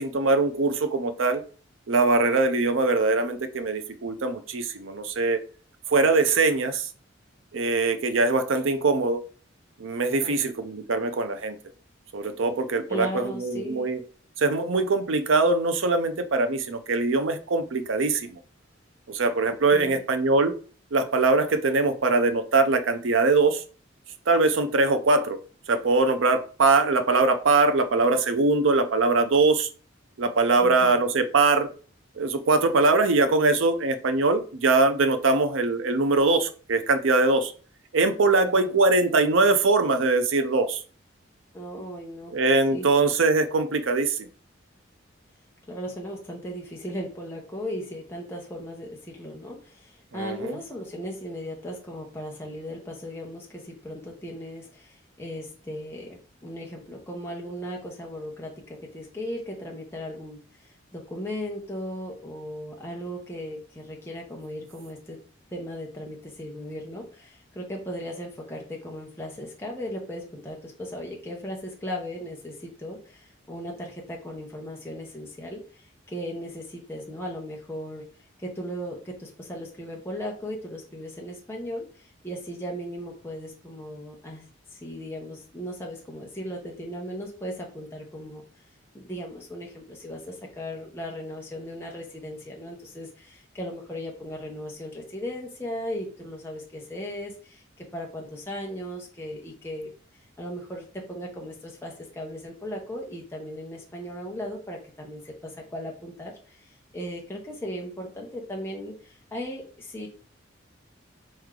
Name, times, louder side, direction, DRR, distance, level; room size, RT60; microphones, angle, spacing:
voice 1, 0.0-1.4 1.9-5.4 5.9-6.9 7.5-9.2 9.8-11.6 12.1-14.0 14.4-18.4 19.1-20.5 20.9-23.6 24.3-25.4 25.7-29.7 30.2-31.7 32.2-37.5 37.9-40.8 42.3-44.3 50.1-50.6, right 3 dB, 75° right, 8 dB, 0.6 m, -22 dB
voice 2, 12.9-13.9 19.7-20.0 30.6-31.0 38.4-38.7 41.5-42.4 42.7-42.9 45.7-65.2 65.5-78.1 78.4-88.6 88.9-99.9 100.4-110.1, equal, 10° left, -1 dB, 0.8 m, -37 dB
4.4 x 3.2 x 3.7 m, 0.39 s
head